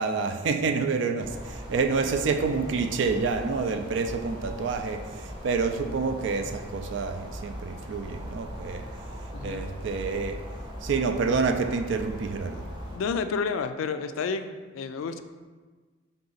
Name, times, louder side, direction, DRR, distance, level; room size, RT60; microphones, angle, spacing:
voice 1, 0.0-8.9 9.4-10.4 10.8-12.6, right 4 dB, 65° right, 7 dB, 0.4 m, -28 dB
sound 1, 1.2-13.0, equal, 25° right, 0.7 m, -39 dB
voice 2, 9.3-9.6 12.9-15.2, left 5 dB, 80° left, 9 dB, 0.3 m, -30 dB
3.9 x 3.5 x 3.9 m, 1.4 s
head